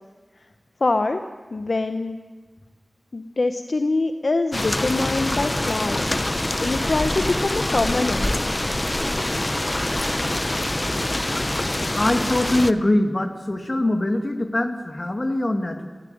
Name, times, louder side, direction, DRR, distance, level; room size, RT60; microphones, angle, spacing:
voice 1, 0.8-1.2 1.5-2.2 3.1-6.2 6.6-8.3, left 3 dB, 65° left, 8 dB, 0.9 m, -24 dB
sound 1, 4.5-12.7, left 1 dB, 25° left, 0.8 m, -25 dB
voice 2, 11.9-15.9, left 1 dB, 45° left, 6 dB, 2.4 m, -22 dB
22.5 x 16.0 x 9.2 m, 1.3 s
wide cardioid pair, 55°, 0 cm